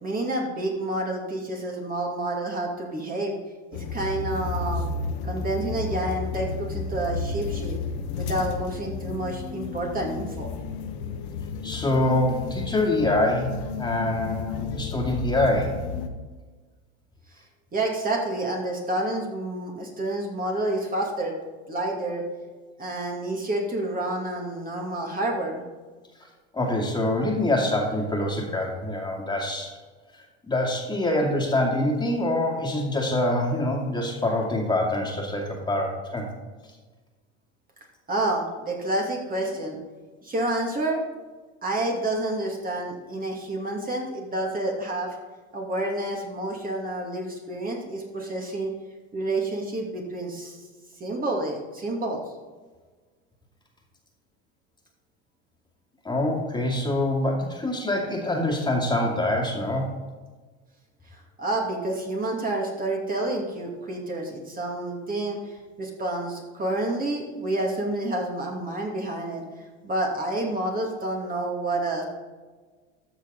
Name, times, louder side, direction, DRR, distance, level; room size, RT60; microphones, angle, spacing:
voice 1, 0.0-3.4 3.7-4.9 5.2-7.8 8.2-10.5 17.7-21.3 21.7-22.2 22.8-25.6 38.1-39.8 40.2-41.0 41.6-45.2 45.5-48.7 49.1-50.6 51.0-52.2 61.4-65.4 65.8-69.4 69.8-72.0, right 1 dB, 25° right, 0 dB, 2.5 m, -29 dB
sound 1, 3.7-16.1, left 4 dB, 75° left, 1.2 m, -32 dB
voice 2, 11.6-15.8 26.5-29.7 30.1-36.3 56.0-59.9, left 1 dB, 15° left, -1 dB, 2.4 m, -25 dB
13.5 x 6.2 x 4.0 m, 1.4 s
supercardioid pair, 100°, 33 cm